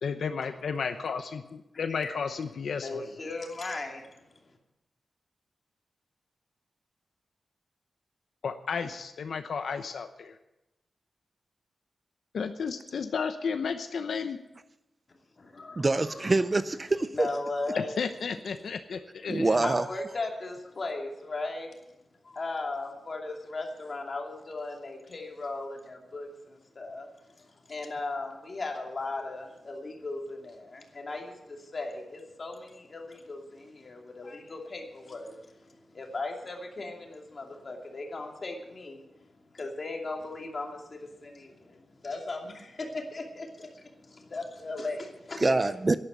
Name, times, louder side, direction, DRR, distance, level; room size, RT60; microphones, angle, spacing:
voice 1, 0.0-3.0 8.4-10.4 12.3-14.4 17.7-19.7, left 5 dB, 70° left, 8 dB, 0.8 m, -33 dB
voice 2, 2.8-4.1 15.4-16.3 17.1-18.0 19.6-21.7 22.2-27.1 27.4-39.1 39.5-45.6, left 2 dB, 35° left, 1 dB, 2.7 m, -37 dB
voice 3, 15.8-17.3 19.3-19.8 45.4-45.9, right 3 dB, 25° right, 13 dB, 0.4 m, -25 dB
11.5 x 11.0 x 8.1 m, 0.93 s
wide cardioid pair, 155°, 0 cm